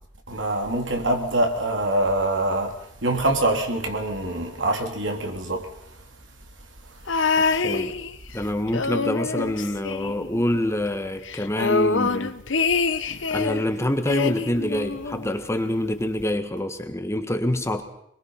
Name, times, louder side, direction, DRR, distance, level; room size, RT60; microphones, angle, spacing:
voice 1, 0.3-2.7 3.0-5.7 7.7-7.8, right 1 dB, 80° right, 3.5 m, -24 dB
sound 1, 7.1-8.4 8.7-10.6 10.9-11.0 11.3-13.6 14.1-15.3 16.2-16.3, left 4 dB, 80° left, 1.0 m, -25 dB
voice 2, 7.4-8.0 8.3-12.3 13.3-17.8, left 1 dB, 15° left, 1.5 m, -26 dB
24.5 x 21.5 x 5.8 m
head